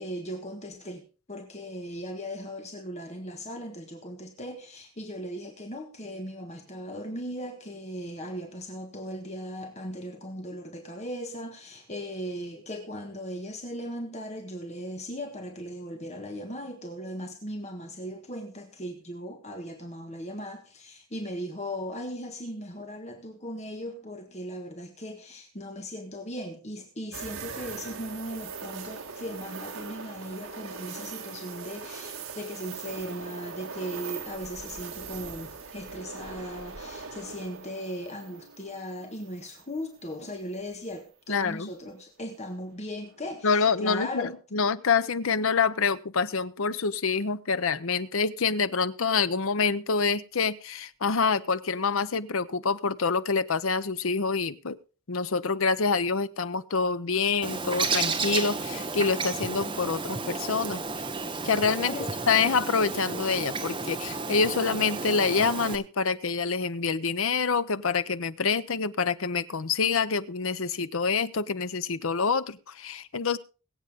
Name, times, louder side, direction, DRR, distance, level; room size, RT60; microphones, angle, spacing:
voice 1, 0.0-44.3 61.8-62.1, equal, 30° left, 4 dB, 1.6 m, -38 dB
sound 1, 27.1-40.1 40.5-40.6 43.1-43.5, right 5 dB, 65° right, 1.9 m, -41 dB
voice 2, 41.3-41.7 43.4-54.8 55.1-60.8 61.4-61.9 62.3-73.4, left 5 dB, 70° left, 14 dB, 0.8 m, -26 dB
Bird, 57.4-65.8, right 4 dB, 25° right, 1.2 m, -32 dB
22.0 x 8.2 x 3.6 m, 0.34 s
head